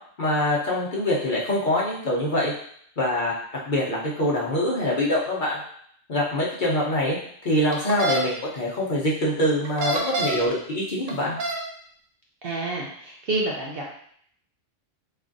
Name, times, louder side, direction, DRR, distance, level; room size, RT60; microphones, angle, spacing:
voice 1, 0.2-2.5 3.0-3.3 3.7-5.6 6.1-7.2 7.4-11.4, left 1 dB, 45° left, -6 dB, 0.8 m, -24 dB
sound 1, 7.7-8.2 9.6-10.5 11.1-11.6, right 1 dB, 80° right, 1.1 m, -26 dB
voice 2, 12.4-13.8, right 2 dB, 60° right, -2 dB, 0.7 m, -28 dB
3.6 x 3.2 x 2.5 m, 0.64 s
omnidirectional pair, 1.3 m